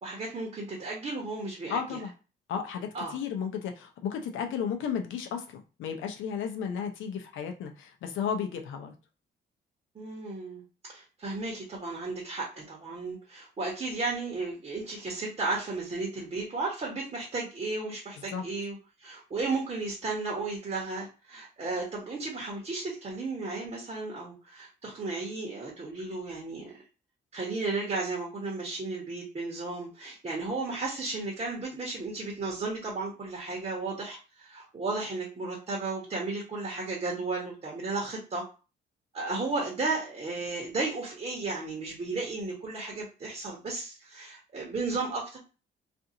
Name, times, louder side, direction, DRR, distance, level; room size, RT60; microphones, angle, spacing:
voice 1, 0.0-1.8 2.9-3.2 9.9-26.8 27.3-38.4 39.1-45.4, right 3 dB, 35° right, -2 dB, 1.0 m, -34 dB
voice 2, 1.7-2.1 2.5-8.9 18.2-18.4, left 7 dB, 80° left, 5 dB, 0.6 m, -34 dB
2.5 x 2.5 x 2.8 m, 0.33 s
cardioid pair, 90°, 20 cm